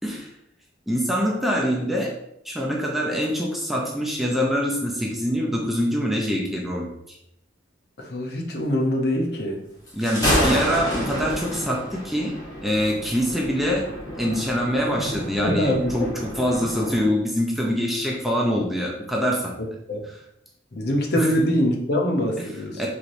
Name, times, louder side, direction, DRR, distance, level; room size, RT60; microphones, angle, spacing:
voice 1, 0.9-2.1 2.5-7.2 9.9-12.3 12.6-13.8 14.1-19.5 21.2-21.3 22.4-22.5 22.8-22.9, equal, ahead, -2 dB, 0.5 m, -24 dB
voice 2, 8.0-9.6 15.4-16.1 19.9-20.1 20.7-22.8, equal, 60° left, 0 dB, 0.7 m, -24 dB
Thunder, 9.9-17.1, equal, 20° left, 1.1 m, -29 dB
4.5 x 3.0 x 2.6 m, 0.77 s
head